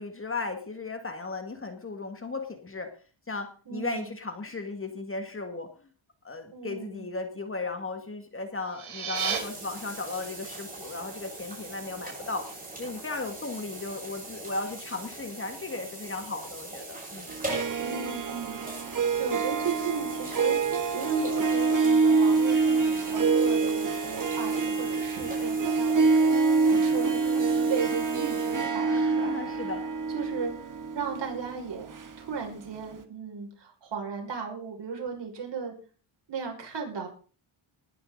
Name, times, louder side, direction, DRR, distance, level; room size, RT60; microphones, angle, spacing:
voice 1, 0.0-2.9 3.3-5.7 6.2-12.5 12.8-17.3 28.9-29.8, left 3 dB, 25° left, 6 dB, 2.1 m, -36 dB
voice 2, 3.7-4.1 6.5-7.1 17.8-18.6 18.9-20.6 20.9-29.7 30.1-30.5 30.9-31.9 32.2-35.7 36.3-37.1, right 6 dB, 60° right, 2 dB, 5.9 m, -36 dB
sound 1, 8.6-9.4, right 7 dB, 90° right, 4.2 m, -31 dB
sound 2, 9.1-28.7, right 2 dB, 15° right, 6.9 m, -42 dB
Harp, 17.3-32.6, right 4 dB, 40° right, 1.7 m, -26 dB
19.5 x 10.5 x 4.0 m, 0.39 s
cardioid pair, 115°, 49 cm